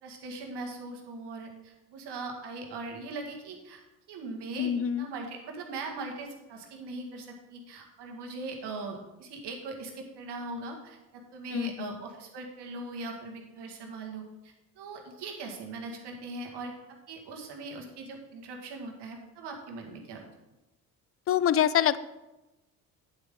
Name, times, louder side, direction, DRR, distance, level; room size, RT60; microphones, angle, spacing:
voice 1, 0.0-3.8 4.1-4.7 5.0-16.7 17.1-20.3, right 3 dB, 65° right, 2 dB, 2.0 m, -40 dB
voice 2, 4.6-5.1 11.5-12.0 21.3-22.0, left 10 dB, 35° left, 16 dB, 0.4 m, -25 dB
8.8 x 8.3 x 3.8 m, 1.0 s
supercardioid pair, 65°, 44 cm